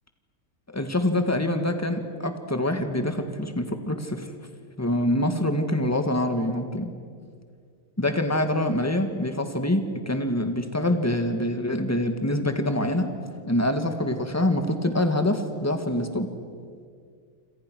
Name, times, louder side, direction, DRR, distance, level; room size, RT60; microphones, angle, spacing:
voice 1, 0.7-4.2 4.8-6.9 8.0-13.1 13.5-16.3, left 1 dB, 10° left, 6 dB, 1.6 m, -25 dB
27.5 x 27.0 x 6.3 m, 2.1 s
omnidirectional pair, 2.4 m